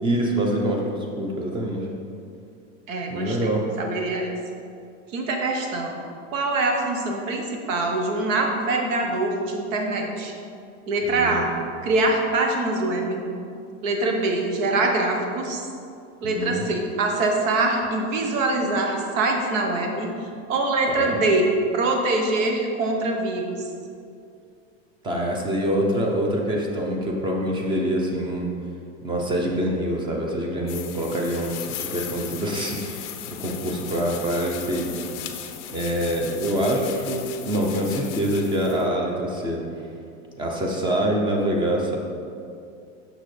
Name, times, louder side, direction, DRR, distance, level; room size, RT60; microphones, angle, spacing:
voice 1, 0.0-1.9 3.1-3.7 11.0-11.6 16.2-16.7 20.9-21.2 25.0-28.5 29.0-34.9 35.7-39.6 40.4-42.0, right 1 dB, 15° right, 0 dB, 0.5 m, -25 dB
voice 2, 2.9-3.5 3.8-4.3 5.1-6.0 6.3-10.3 10.9-11.5 11.8-13.2 13.8-15.6 16.2-20.1 20.5-23.5, right 2 dB, 80° right, 2 dB, 1.1 m, -24 dB
sound 1, 30.7-38.9, left 9 dB, 35° left, 0.4 m, -37 dB
6.4 x 6.4 x 3.2 m, 2.5 s
supercardioid pair, 150°, 39 cm